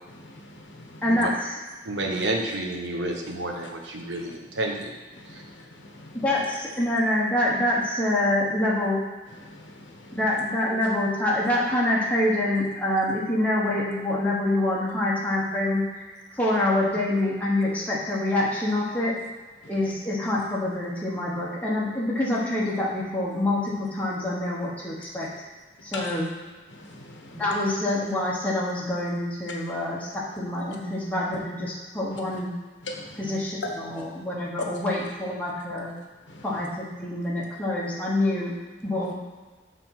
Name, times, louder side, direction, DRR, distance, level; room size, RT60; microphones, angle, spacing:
voice 1, 0.2-1.0 2.1-2.2 3.6-3.7 4.2-4.3 5.2-6.1 9.4-9.8 10.0-10.2 25.9-26.1 26.7-27.4 32.9-33.1 33.6-33.7 36.3-36.4, left 2 dB, 90° left, 2 dB, 1.1 m, -40 dB
voice 2, 1.0-1.6 6.1-9.0 10.1-19.1 19.7-25.4 25.8-26.3 27.3-32.5 33.2-35.9 36.4-38.5 38.8-39.1, left 1 dB, 10° left, -6 dB, 1.3 m, -26 dB
voice 3, 1.8-5.0 5.3-5.4, right 2 dB, 80° right, 1 dB, 1.1 m, -30 dB
7.0 x 4.1 x 5.9 m, 1.3 s
head